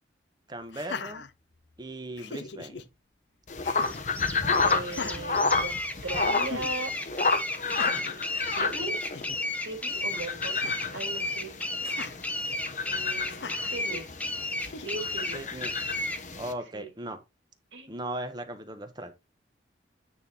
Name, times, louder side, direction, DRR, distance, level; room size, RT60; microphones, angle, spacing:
voice 1, 0.5-1.3 1.8-2.9 15.3-15.7 16.4-17.2 17.9-19.1, right 1 dB, 25° right, 1.2 m, -38 dB
Laughter, 0.7-1.8 2.2-2.8 3.6-4.1 4.8-6.1 6.5-6.7 7.6-8.2 8.7-8.8 9.0-9.4 10.5-11.1 11.8-12.2 13.3-13.8 14.6-15.2, left 4 dB, 75° left, 0.7 m, -40 dB
sound 1, 3.5-16.5, left 4 dB, 45° left, 0.9 m, -31 dB
sound 2, 3.8-16.2, left 2 dB, 10° left, 0.7 m, -33 dB
voice 2, 4.6-6.9 7.6-9.0 9.5-10.7 10.9-11.5 12.8-14.1 14.8-15.4 16.7-16.9 17.7-18.0, right 2 dB, 85° right, 2.5 m, -38 dB
9.1 x 3.9 x 4.3 m
head